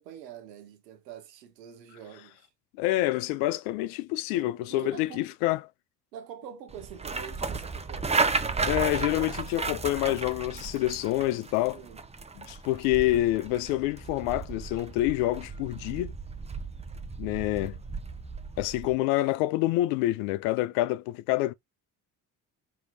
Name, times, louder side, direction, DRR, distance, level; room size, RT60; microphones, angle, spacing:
voice 1, 0.0-2.5 4.3-5.3 6.1-8.7 11.7-12.0, right 9 dB, 90° right, 0.7 m, -45 dB
voice 2, 2.8-5.6 8.7-11.8 12.5-16.1 17.2-17.8 18.6-21.5, left 16 dB, 80° left, 0.5 m, -27 dB
sound 1, 6.7-19.0, right 4 dB, 15° right, 0.6 m, -34 dB
4.7 x 2.8 x 2.7 m
hypercardioid pair, 50°, 48 cm